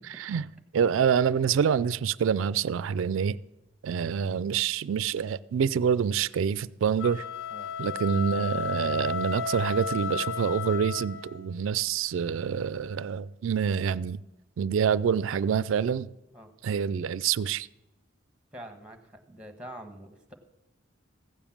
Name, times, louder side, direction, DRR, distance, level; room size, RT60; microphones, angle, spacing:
voice 1, 0.2-0.5 0.7-3.4 3.8-7.2 7.8-14.2 14.6-16.1 16.6-17.7, right 7 dB, 75° right, 0.3 m, -26 dB
sound 1, 6.9-11.5, left 5 dB, 85° left, 0.9 m, -33 dB
voice 2, 18.5-20.3, right 1 dB, 5° right, 1.2 m, -45 dB
15.5 x 7.1 x 7.2 m
head